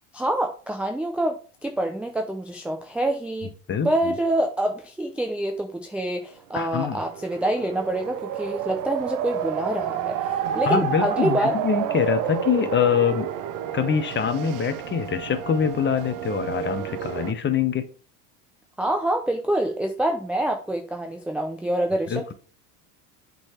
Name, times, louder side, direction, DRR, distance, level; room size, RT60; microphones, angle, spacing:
voice 1, 0.1-3.5 3.8-11.5 18.8-22.3, right 1 dB, 5° right, 3 dB, 0.5 m, -26 dB
voice 2, 3.7-4.1 6.5-7.0 10.7-13.3 13.7-17.9 22.1-22.3, left 7 dB, 25° left, 11 dB, 0.8 m, -24 dB
sound 1, 6.7-17.3, right 9 dB, 40° right, 0.7 m, -30 dB
7.7 x 4.0 x 4.3 m, 0.40 s
hypercardioid pair, 100°, 49 cm